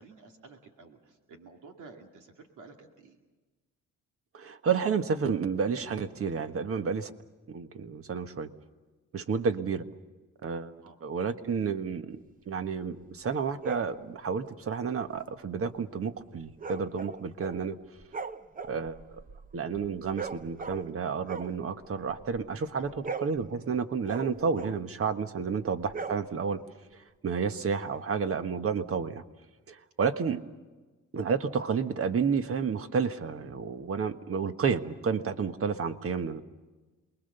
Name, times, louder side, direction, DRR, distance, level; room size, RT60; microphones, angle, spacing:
voice 1, 0.0-3.2 9.3-9.6 10.8-11.0 22.8-22.9 30.0-30.1, right 4 dB, 85° right, 3 dB, 2.5 m, -52 dB
voice 2, 4.3-7.1 7.5-8.5 9.1-9.8 10.4-10.7 11.0-12.2 12.5-17.8 18.6-19.0 19.5-26.6 27.2-29.2 29.7-30.4 31.1-36.4, right 6 dB, 50° right, 9 dB, 1.4 m, -30 dB
sound 1, 13.6-14.0 16.6-17.7 18.0-21.0 21.2-22.5 22.8-24.9 25.8-26.6, right 4 dB, 30° right, 0.8 m, -40 dB
28.0 x 21.5 x 6.8 m, 1.2 s
cardioid pair, 90°, 30 cm